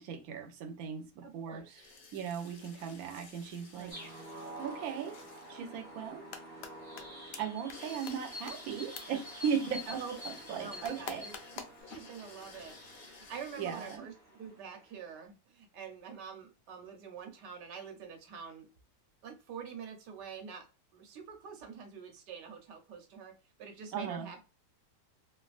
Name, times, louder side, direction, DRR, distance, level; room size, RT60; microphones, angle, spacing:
voice 1, 0.0-1.6 2.1-3.9 4.6-5.2 5.5-6.2 7.4-11.2 13.6-14.1 23.9-24.3, right 7 dB, 65° right, 5 dB, 1.0 m, -37 dB
voice 2, 1.2-1.8 3.7-4.0 9.6-10.2 10.6-11.4 11.8-12.8 13.1-18.7 19.2-20.7 20.9-23.3 23.6-24.4, right 6 dB, 85° right, 3 dB, 1.4 m, -46 dB
sound 1, 1.8-14.0, left 4 dB, 65° left, 1.1 m, -55 dB
sound 2, 3.9-15.0, equal, 10° right, 0.9 m, -48 dB
sound 3, 6.1-6.7 7.0-7.1 7.3-7.4 7.7-7.8 8.1-8.2 8.5-8.6 9.0-9.1 10.8-11.8, left 7 dB, 80° left, 1.2 m, -42 dB
3.3 x 2.3 x 2.4 m, 0.31 s
omnidirectional pair, 1.8 m